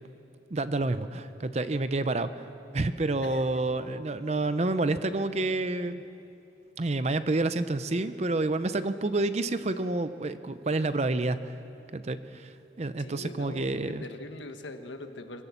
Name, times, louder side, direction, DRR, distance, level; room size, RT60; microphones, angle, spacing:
voice 1, 0.5-2.4 2.7-6.0 6.8-11.6 11.9-14.0, right 2 dB, 35° right, 12 dB, 0.6 m, -29 dB
voice 2, 3.2-3.6 13.0-15.4, left 2 dB, 85° left, 7 dB, 1.4 m, -42 dB
23.0 x 17.0 x 7.2 m, 2.7 s
head